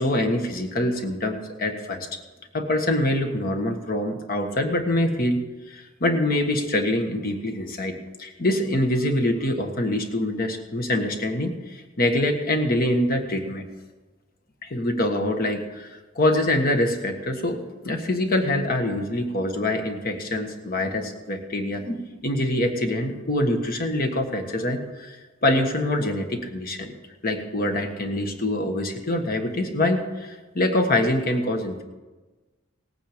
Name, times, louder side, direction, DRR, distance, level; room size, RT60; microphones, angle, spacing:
voice 1, 0.0-2.1 2.5-5.4 5.7-13.7 14.6-25.2 25.4-26.9 27.2-31.8, left 1 dB, 50° left, 5 dB, 1.5 m, -25 dB
18.0 x 9.1 x 5.1 m, 1.2 s
head